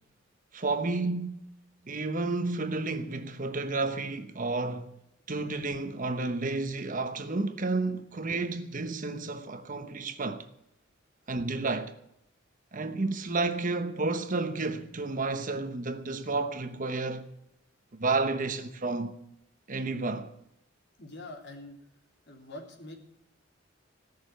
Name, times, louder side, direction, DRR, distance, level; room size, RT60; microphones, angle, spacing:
voice 1, 0.5-1.5 1.8-4.9 5.3-10.5 11.3-12.0 12.7-17.3 18.0-19.1 19.7-20.3, right 3 dB, 45° right, 1.0 m, -31 dB
voice 2, 21.0-21.8 22.3-23.0, left 2 dB, 60° left, 3.5 m, -44 dB
17.5 x 6.7 x 9.1 m
head